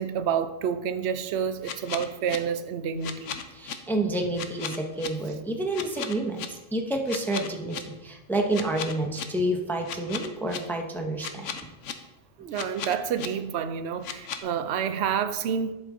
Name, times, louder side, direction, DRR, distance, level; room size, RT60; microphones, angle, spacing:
voice 1, 0.0-3.4 12.4-15.7, right 7 dB, 60° right, 0.7 m, -29 dB
sound 1, 1.6-2.4 3.0-3.7 4.4-5.1 5.7-6.5 7.1-7.8 8.5-9.2 9.9-10.6 11.2-11.9 12.5-13.3 14.0-14.4, left 8 dB, 60° left, 0.9 m, -35 dB
voice 2, 3.5-11.6, right 1 dB, ahead, 0.4 m, -29 dB
11.0 x 5.3 x 3.7 m
omnidirectional pair, 1.6 m